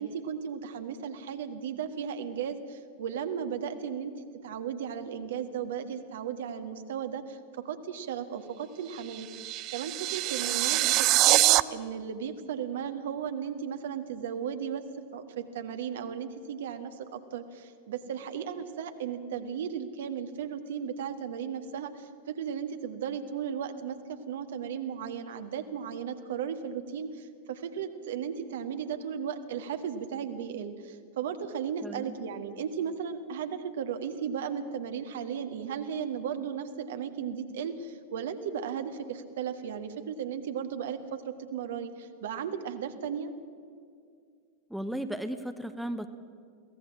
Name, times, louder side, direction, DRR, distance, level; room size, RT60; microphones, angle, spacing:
voice 1, 0.0-9.3 9.7-14.8 15.1-43.3, right 7 dB, 60° right, 8 dB, 1.6 m, -35 dB
sound 1, 8.9-11.6, right 18 dB, 40° right, 0.5 m, -24 dB
voice 2, 31.8-32.2 44.7-46.1, right 1 dB, ahead, 8 dB, 1.0 m, -35 dB
22.5 x 17.0 x 7.4 m, 2.2 s
figure-of-eight pair, 90°, 0 cm